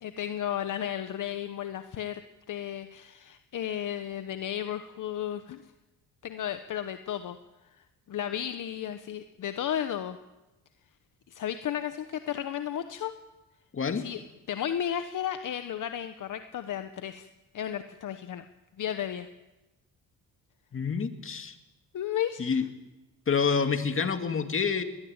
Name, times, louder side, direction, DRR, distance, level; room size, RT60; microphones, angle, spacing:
voice 1, 0.0-2.2 2.5-5.6 6.2-7.4 8.1-10.2 11.3-13.1 13.9-14.2 14.5-17.3 17.5-18.4 18.8-19.3 21.9-22.6, left 10 dB, 55° left, 9 dB, 1.1 m, -33 dB
voice 2, 13.7-14.0 20.7-21.5 22.4-22.6 23.3-24.8, left 5 dB, 35° left, 7 dB, 2.3 m, -27 dB
21.5 x 19.5 x 8.9 m, 1.1 s
cardioid pair, 110°, 36 cm